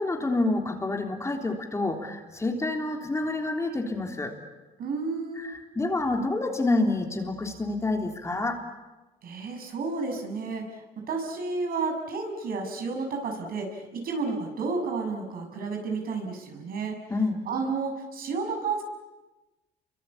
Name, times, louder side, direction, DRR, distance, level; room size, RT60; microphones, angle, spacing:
voice 1, 0.0-4.3 5.4-8.6 17.1-17.5, left 2 dB, 15° left, 3 dB, 3.5 m, -28 dB
voice 2, 4.8-5.5 9.2-17.0 17.5-18.8, right 4 dB, 60° right, 4 dB, 6.8 m, -31 dB
28.5 x 24.5 x 8.6 m, 1.1 s
cardioid pair, 110°, 17 cm